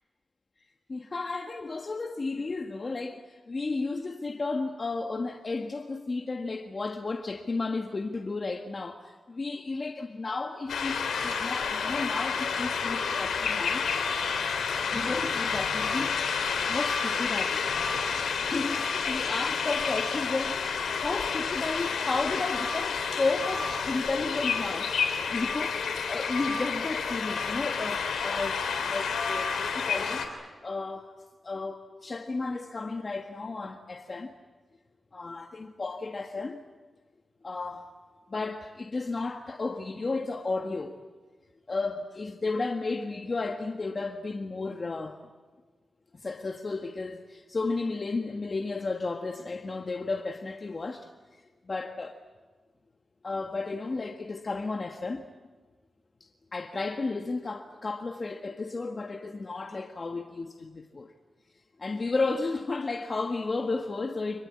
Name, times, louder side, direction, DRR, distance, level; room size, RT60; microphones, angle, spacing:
voice 1, 0.9-13.9 14.8-17.6 18.2-24.9 25.3-30.3 30.6-31.1 31.4-34.3 35.1-36.6 37.4-37.9 38.3-40.9 41.7-45.2 46.1-51.4 51.7-52.2 53.2-55.3 56.5-61.1 61.8-64.5, left 3 dB, 45° left, 1.6 m, -33 dB
sound 1, 10.7-30.3, left 5 dB, 85° left, 3.5 m, -30 dB
26.5 x 20.0 x 8.7 m
cardioid pair, 50°, 0 cm